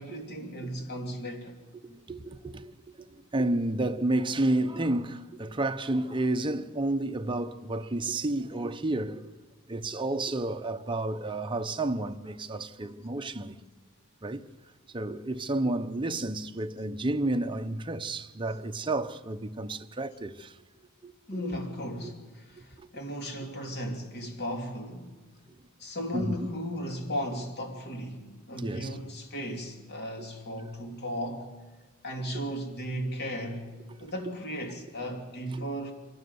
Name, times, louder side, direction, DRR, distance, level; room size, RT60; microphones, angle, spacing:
voice 1, 0.0-1.6 21.3-25.1 25.8-31.5 32.0-33.7 34.0-35.9, equal, 50° left, 2.9 m, -36 dB
voice 2, 1.8-9.2 9.7-13.6 14.2-14.4 14.9-20.5 21.0-21.4 22.0-22.1 22.6-22.9 26.1-26.3 28.6-28.9 30.2-30.3 35.5-35.6, right 2 dB, 25° right, 0.8 m, -31 dB
24.5 x 12.0 x 9.5 m
head